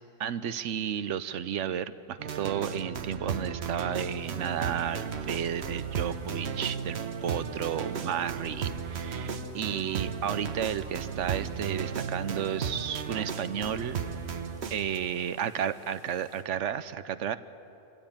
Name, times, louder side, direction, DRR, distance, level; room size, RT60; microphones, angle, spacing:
voice 1, 0.2-14.0 14.7-17.4, right 9 dB, 80° right, 13 dB, 1.0 m, -32 dB
sound 1, 2.2-15.0, right 6 dB, 60° right, 1.2 m, -35 dB
sound 2, 3.9-16.4, left 2 dB, 80° left, 2.4 m, -56 dB
24.0 x 15.5 x 8.8 m, 2.9 s
omnidirectional pair, 1.3 m